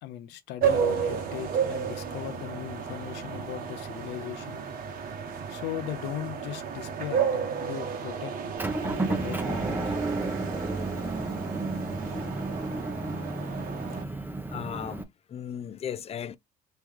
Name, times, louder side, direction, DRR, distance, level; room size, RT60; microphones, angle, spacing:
voice 1, 0.0-4.6 5.5-8.3 8.8-10.0, left 12 dB, 85° left, 0.7 m, -38 dB
sound 1, 0.6-14.0, right 7 dB, 60° right, 1.1 m, -32 dB
Motor vehicle (road) / Engine, 8.6-15.0, right 2 dB, 10° right, 0.7 m, -32 dB
voice 2, 14.1-16.4, left 9 dB, 35° left, 0.5 m, -37 dB
3.3 x 3.1 x 3.5 m
cardioid pair, 110°, 17 cm